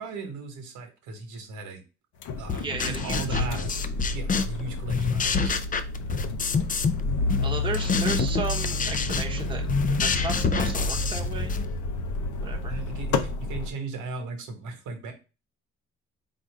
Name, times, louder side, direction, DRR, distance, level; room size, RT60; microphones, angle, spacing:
voice 1, 0.0-1.8 2.4-5.8 12.7-15.1, right 3 dB, 85° right, 4 dB, 1.2 m, -37 dB
sound 1, 2.2-13.7, left 2 dB, 75° left, 0.7 m, -30 dB
sound 2, 2.5-4.6 4.9-7.0 7.3-11.6, left 5 dB, 30° left, 0.4 m, -27 dB
voice 2, 2.5-3.5 7.4-9.6 10.0-11.5 12.4-12.8, right 4 dB, 15° right, 0 dB, 0.9 m, -34 dB
4.1 x 2.5 x 4.7 m, 0.31 s
cardioid pair, 90°, 30 cm